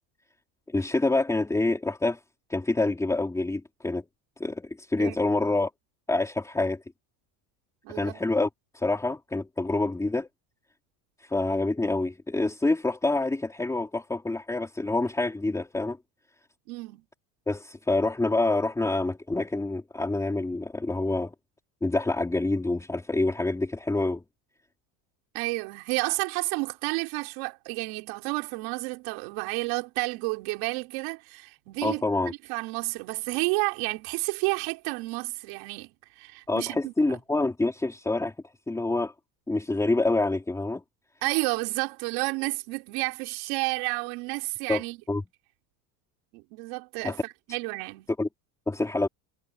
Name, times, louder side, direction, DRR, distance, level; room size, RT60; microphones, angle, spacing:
voice 1, 0.7-2.2 2.5-4.0 4.4-5.7 6.1-6.8 7.9-8.5 8.7-10.3 11.2-16.0 17.5-21.3 21.8-24.2 31.8-32.3 36.5-38.3 38.7-39.1 39.5-40.8 44.7-44.8 45.1-45.2 47.0-47.2 48.2-48.3 48.7-49.1, left 2 dB, 5° left, 3.6 m, -27 dB
voice 2, 7.8-8.2 16.7-17.0 25.3-37.2 41.2-45.0 46.3-48.1, right 27 dB, 65° right, 5.0 m, -31 dB
cardioid pair, 170°, 47 cm